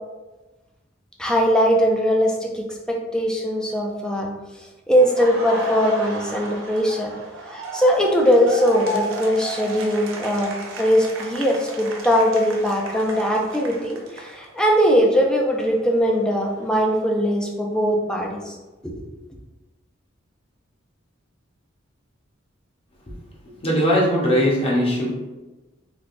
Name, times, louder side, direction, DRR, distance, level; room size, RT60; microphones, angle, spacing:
voice 1, 1.2-4.3 4.9-7.1 7.5-10.5 10.8-18.6 18.8-19.0, equal, 5° left, -1 dB, 0.4 m, -20 dB
Laughter, 5.0-14.8 15.1-17.2, right 2 dB, 70° right, 0.6 m, -34 dB
voice 2, 23.6-25.1, equal, 30° left, -4 dB, 0.8 m, -19 dB
3.3 x 2.9 x 2.5 m, 1.1 s
head